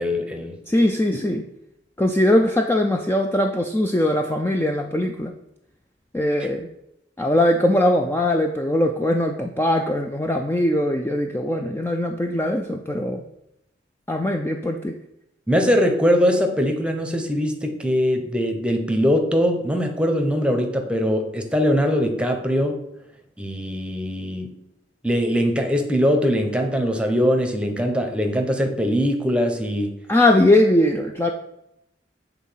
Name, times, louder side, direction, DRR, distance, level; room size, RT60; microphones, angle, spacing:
voice 1, 0.0-0.5 15.5-22.8 23.4-24.5 25.0-29.9, equal, 5° right, 4 dB, 0.8 m, -21 dB
voice 2, 0.7-1.4 2.0-5.3 6.1-6.7 7.2-13.2 14.1-14.9 30.1-31.3, left 1 dB, 10° left, 3 dB, 0.4 m, -20 dB
8.1 x 3.6 x 5.6 m, 0.84 s
head